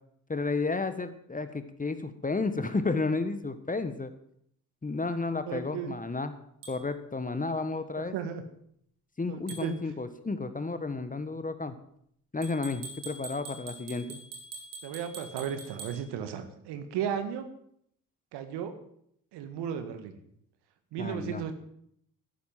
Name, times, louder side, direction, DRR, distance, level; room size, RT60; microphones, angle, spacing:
voice 1, 0.3-4.1 4.8-6.3 6.7-8.1 9.2-11.7 12.3-14.2 21.0-21.4, left 3 dB, 20° left, 11 dB, 1.4 m, -32 dB
voice 2, 5.5-6.0 8.0-8.4 9.3-9.8 14.8-17.5 18.3-18.8 19.3-20.2 20.9-21.5, right 8 dB, 60° right, 8 dB, 1.9 m, -35 dB
sound 1, 6.6-6.8 9.5-9.7 12.4-16.0, right 3 dB, 80° right, 2.9 m, -44 dB
13.0 x 10.5 x 7.6 m, 0.70 s
figure-of-eight pair, 50°, 45 cm